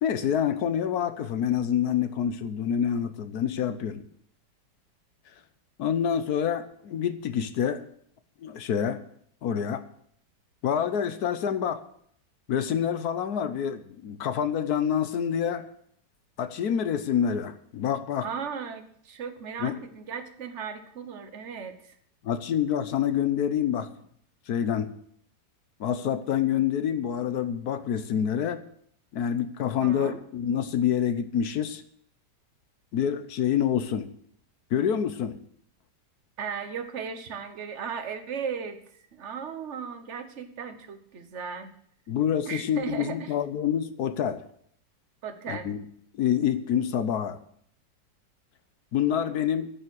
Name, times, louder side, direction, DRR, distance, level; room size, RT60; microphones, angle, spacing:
voice 1, 0.0-4.0 5.8-7.8 8.4-9.0 9.4-9.8 10.6-11.8 12.5-15.7 16.4-18.3 19.6-19.8 22.2-23.9 24.5-24.9 25.8-28.6 29.1-31.8 32.9-34.1 34.7-35.4 42.1-44.4 45.5-45.8 46.1-47.4 48.9-49.7, left 9 dB, 65° left, 12 dB, 1.3 m, -27 dB
voice 2, 18.2-21.9 29.8-30.2 36.4-41.7 42.5-43.3 45.2-45.8, right 6 dB, 45° right, 8 dB, 1.4 m, -36 dB
10.5 x 7.2 x 9.6 m, 0.66 s
omnidirectional pair, 1.9 m